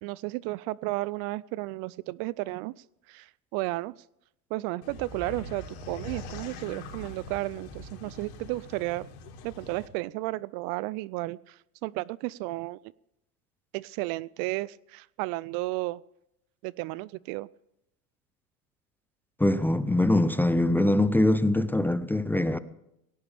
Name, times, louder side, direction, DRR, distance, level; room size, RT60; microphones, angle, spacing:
voice 1, 0.0-2.7 3.1-4.0 4.5-9.1 9.4-12.8 13.7-16.0 16.6-17.5, right 20 dB, 50° right, 0.5 m, -33 dB
sound 1, 4.8-9.9, left 2 dB, 65° left, 4.1 m, -42 dB
voice 2, 19.4-22.6, left 1 dB, 5° left, 0.5 m, -23 dB
19.5 x 17.5 x 3.4 m
hypercardioid pair, 105°, 47 cm